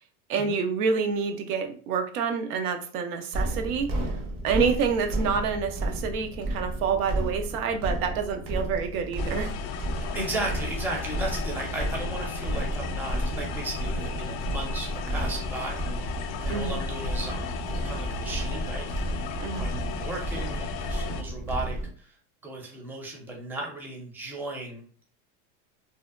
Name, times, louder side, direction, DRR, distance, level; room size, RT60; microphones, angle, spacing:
voice 1, 0.3-3.9 4.4-9.5 16.5-16.8 19.4-19.7, right 6 dB, 90° right, 5 dB, 0.6 m, -28 dB
sound 1, 3.3-21.9, right 1 dB, 50° right, 0.7 m, -32 dB
sound 2, 9.2-21.2, left 5 dB, 65° left, 0.5 m, -35 dB
voice 2, 9.9-18.9 19.6-22.1 22.4-24.8, right 2 dB, 5° right, 0 dB, 0.4 m, -36 dB
2.7 x 2.1 x 2.3 m, 0.42 s
supercardioid pair, 125°, 43 cm